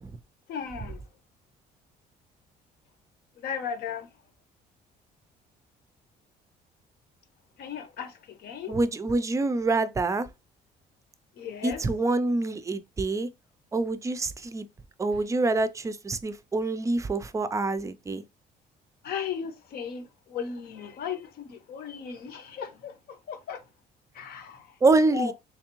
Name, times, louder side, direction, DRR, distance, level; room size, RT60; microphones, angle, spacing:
voice 1, 0.5-1.0 3.4-4.1 7.6-8.8 11.4-11.8 19.0-23.6 24.1-24.7 25.1-25.3, left 7 dB, 65° left, 0.9 m, -36 dB
voice 2, 8.7-10.3 11.6-13.3 13.7-14.7 15.0-18.2 24.8-25.3, right 3 dB, 20° right, 0.4 m, -26 dB
3.4 x 3.2 x 3.0 m
cardioid pair, 110°, 17 cm